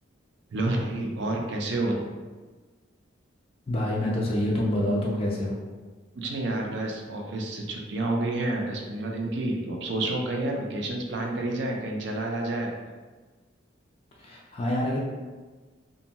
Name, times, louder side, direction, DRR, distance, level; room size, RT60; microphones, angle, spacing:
voice 1, 0.5-2.0 6.1-12.7, right 2 dB, 65° right, 0 dB, 0.4 m, -29 dB
voice 2, 3.7-5.6 14.2-15.0, left 1 dB, 30° left, -4 dB, 0.3 m, -27 dB
2.6 x 2.2 x 2.8 m, 1.3 s
head